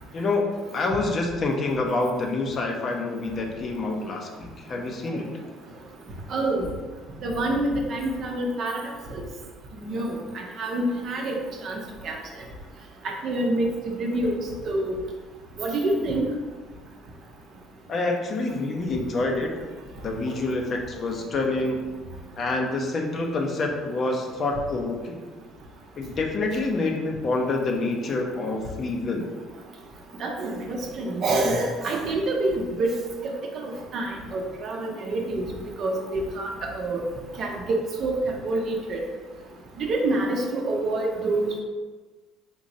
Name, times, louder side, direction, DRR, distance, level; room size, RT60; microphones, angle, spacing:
voice 1, 0.1-5.3 17.9-19.5 20.0-21.9 22.4-25.1 26.0-29.3, left 2 dB, 45° left, 2 dB, 0.6 m, -27 dB
voice 2, 6.3-6.7 7.2-8.8 9.1-9.2 9.8-10.2 10.6-11.3 11.6-11.8 12.0-12.2 13.0-13.7 14.0-14.4 14.6-14.9 15.6-16.2 30.2-32.9 33.5-35.5 35.8-36.5 36.7-37.0 37.4-38.2 38.4-39.0 39.8-41.6, right 2 dB, 55° right, 1 dB, 0.6 m, -26 dB
3.7 x 2.9 x 2.6 m, 1.3 s
hypercardioid pair, 60°, 0 cm